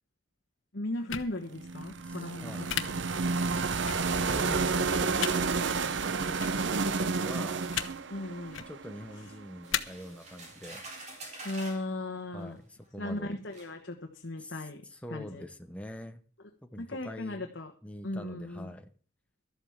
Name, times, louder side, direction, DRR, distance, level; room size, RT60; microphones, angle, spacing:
voice 1, 0.7-3.0 8.1-8.6 11.4-12.6 13.0-14.8 15.1-15.4 16.8-17.7 18.0-18.7, left 1 dB, 60° left, 1.4 m, -37 dB
sound 1, 1.1-1.3 2.7-2.8 3.9-4.0 5.2-5.3 6.4-6.5 7.7-7.9 8.4-8.7 9.7-9.8, left 10 dB, 90° left, 1.0 m, -32 dB
sound 2, 1.5-9.5, right 4 dB, 65° right, 0.7 m, -30 dB
voice 2, 2.0-2.7 3.9-7.6 8.7-10.8 12.3-13.4 14.4-16.2 16.6-17.5 17.8-18.9, left 1 dB, 5° left, 0.8 m, -44 dB
sound 3, 9.6-11.9 12.8-12.9 13.5-13.7, right 2 dB, 35° right, 3.5 m, -46 dB
13.0 x 8.1 x 7.3 m
head